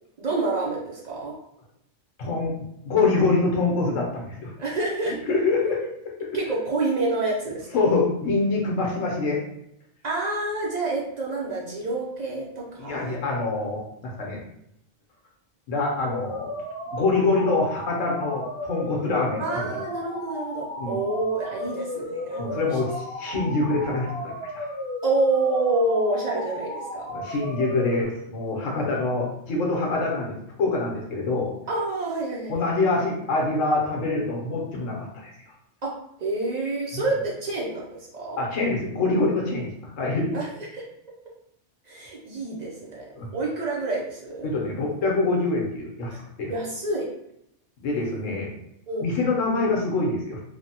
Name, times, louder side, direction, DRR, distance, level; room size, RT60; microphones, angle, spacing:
voice 1, 0.2-1.3 4.6-5.3 5.8-5.9 6.3-7.8 10.0-13.2 19.4-22.8 25.0-27.1 31.7-32.7 35.8-38.4 40.3-40.8 41.9-44.5 46.1-46.2 46.5-47.1 48.9-49.1, right 2 dB, 60° right, -4 dB, 0.4 m, -28 dB
voice 2, 2.2-2.5 2.8-4.5 5.1-5.8 7.7-9.4 12.8-14.4 15.7-16.5 16.9-19.4 19.7-19.8 20.8-21.0 22.4-24.7 27.1-31.5 32.5-35.1 36.9-37.0 38.4-40.3 43.1-43.3 44.4-46.1 46.4-46.5 47.8-48.5 49.0-50.4, left 3 dB, 90° left, -1 dB, 1.2 m, -25 dB
sound 1, 16.1-28.0, left 1 dB, 50° left, 1.0 m, -34 dB
3.2 x 2.1 x 2.7 m, 0.79 s
omnidirectional pair, 1.3 m